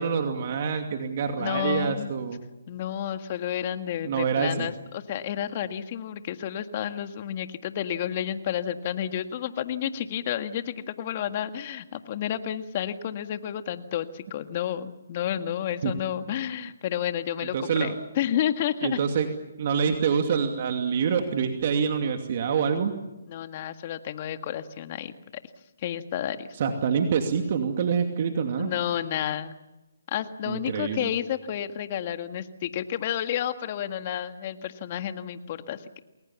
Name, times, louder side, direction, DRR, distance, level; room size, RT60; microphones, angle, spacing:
voice 1, 0.0-2.4 4.0-4.7 15.8-15.9 17.4-17.9 18.8-19.3 19.6-22.9 26.6-28.7 30.5-31.1, right 6 dB, 45° right, 5 dB, 2.6 m, -26 dB
voice 2, 1.4-2.1 2.7-19.0 23.3-25.1 25.8-26.5 28.6-29.5 30.1-36.0, left 10 dB, 35° left, 9 dB, 1.8 m, -31 dB
29.0 x 21.5 x 7.2 m, 1.0 s
hypercardioid pair, 150°, 0 cm